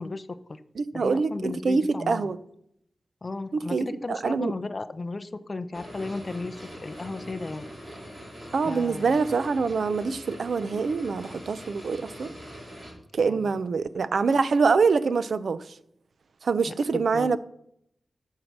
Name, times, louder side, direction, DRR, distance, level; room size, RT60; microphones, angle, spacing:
voice 1, 0.0-0.6 0.9-2.3 3.2-7.7 8.7-9.2 13.3-13.6 16.9-17.4, left 3 dB, 30° left, 0.6 m, -35 dB
voice 2, 0.8-2.4 3.5-4.5 8.5-12.3 13.1-15.6 16.4-17.4, right 4 dB, 65° right, 0.6 m, -25 dB
sound 1, 5.7-12.9, equal, 25° right, 4.4 m, -43 dB
13.5 x 5.7 x 6.0 m
wide cardioid pair, 150°, 0 cm